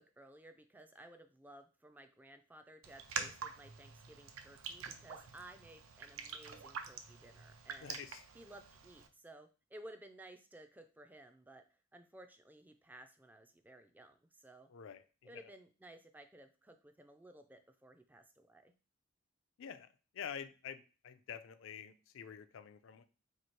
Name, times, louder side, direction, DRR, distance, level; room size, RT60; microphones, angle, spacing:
voice 1, 0.0-8.0 8.3-14.7 15.2-18.7, right 1 dB, 10° right, 7 dB, 0.3 m, -57 dB
Raindrop, 2.8-9.1, right 6 dB, 75° right, 0.5 m, -46 dB
voice 2, 7.8-8.2 14.7-15.0 19.6-19.9 20.1-23.0, left 8 dB, 65° left, 11 dB, 0.4 m, -47 dB
3.0 x 2.7 x 4.4 m, 0.34 s
head